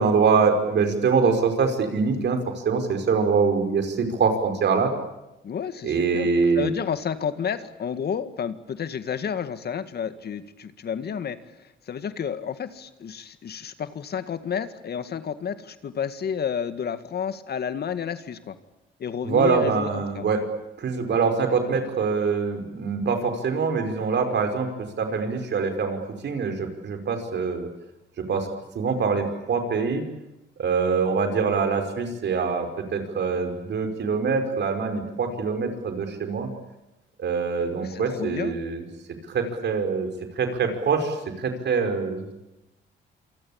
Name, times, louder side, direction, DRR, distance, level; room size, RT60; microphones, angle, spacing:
voice 1, 0.0-4.9 5.8-6.7 19.2-20.4 20.8-27.7 28.2-28.5 28.8-30.0 30.6-36.5 37.2-38.8 39.3-40.1 40.4-42.3, right 5 dB, 60° right, 6 dB, 5.4 m, -24 dB
voice 2, 5.4-6.3 6.5-11.4 11.9-18.5 19.0-20.2 37.8-38.6, left 7 dB, 55° left, 11 dB, 2.0 m, -31 dB
27.5 x 24.5 x 8.8 m, 0.94 s
cardioid pair, 90°, 20 cm